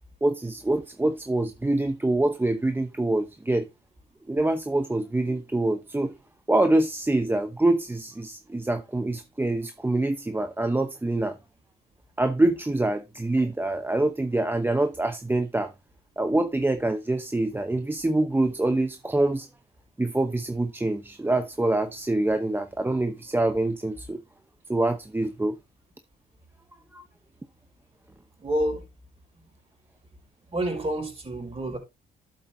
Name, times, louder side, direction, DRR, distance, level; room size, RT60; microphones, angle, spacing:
voice 1, 0.2-3.7 4.3-6.1 6.5-11.4 12.2-15.7 16.2-19.5 20.0-24.2 24.7-25.6 26.9-27.0, right 2 dB, 10° right, 0.8 m, -25 dB
voice 2, 28.4-28.8 30.5-31.8, right 1 dB, 30° right, 5.0 m, -28 dB
12.0 x 7.8 x 2.7 m
cardioid pair, 90°, 20 cm